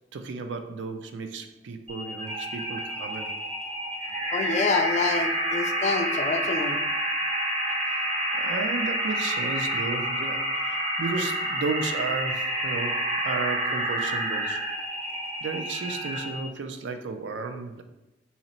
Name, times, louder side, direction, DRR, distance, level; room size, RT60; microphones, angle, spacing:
voice 1, 0.1-3.3 7.8-14.6 15.4-17.8, right 4 dB, 75° right, 7 dB, 0.4 m, -34 dB
sound 1, 1.9-16.5, right 1 dB, 30° right, 0.7 m, -29 dB
voice 2, 4.3-6.8, left 4 dB, 40° left, 7 dB, 0.3 m, -27 dB
2.9 x 2.7 x 4.2 m, 0.95 s
head